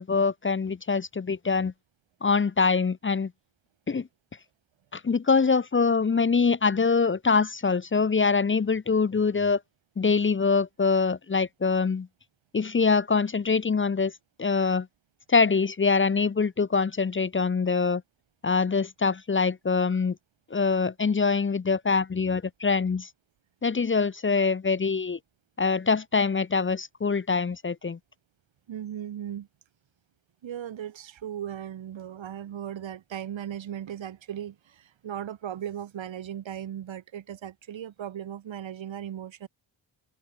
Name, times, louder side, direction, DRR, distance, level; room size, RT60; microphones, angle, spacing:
voice 1, 0.0-1.7 2.2-3.3 3.9-4.1 4.9-9.6 10.0-12.1 12.5-14.1 14.4-14.9 15.3-18.0 18.4-20.2 20.5-23.1 23.6-25.2 25.6-28.0, left 4 dB, 25° left, 0.8 m, -24 dB
voice 2, 28.7-29.5 30.4-39.5, right 10 dB, 75° right, 2.1 m, -37 dB
wide cardioid pair, 140°, 46 cm